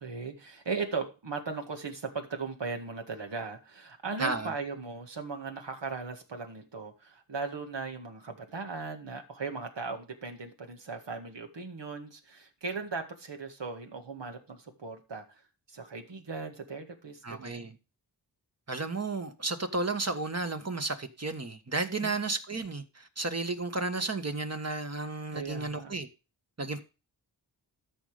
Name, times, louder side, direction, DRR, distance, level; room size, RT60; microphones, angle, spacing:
voice 1, 0.0-15.2 15.7-17.7 22.0-22.2 25.3-25.9, right 4 dB, 80° right, 2.1 m, -38 dB
voice 2, 4.2-4.5 17.2-17.7 18.7-26.1 26.6-26.8, right 3 dB, 35° right, 1.5 m, -33 dB
13.0 x 5.5 x 5.0 m
wide cardioid pair, 55°, 42 cm